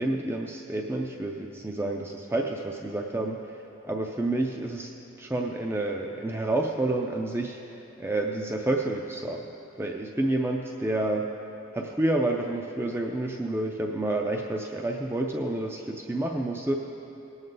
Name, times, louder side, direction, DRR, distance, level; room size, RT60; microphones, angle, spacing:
voice 1, 0.0-4.9 5.2-9.5 9.8-11.3 11.7-16.7, right 2 dB, 10° right, 1 dB, 0.4 m, -29 dB
18.5 x 7.9 x 3.8 m, 2.9 s
head